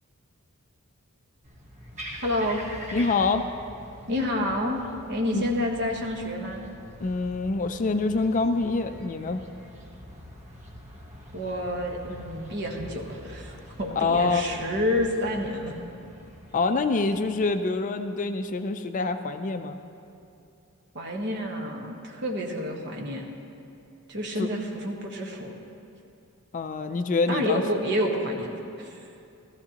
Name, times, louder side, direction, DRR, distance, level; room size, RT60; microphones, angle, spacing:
sound 1, 1.4-17.4, equal, 30° right, 1.1 m, -45 dB
voice 1, 2.2-2.7 4.1-4.8 5.1-6.6 11.3-15.7 20.9-23.3 24.1-25.5 27.3-29.1, left 1 dB, 50° right, 1 dB, 1.2 m, -29 dB
voice 2, 2.9-3.5 5.3-5.4 7.0-9.4 14.0-14.4 16.5-19.8 24.4-24.5 26.5-27.6, left 3 dB, 35° left, 8 dB, 0.4 m, -25 dB
14.5 x 14.0 x 2.9 m, 2.6 s
head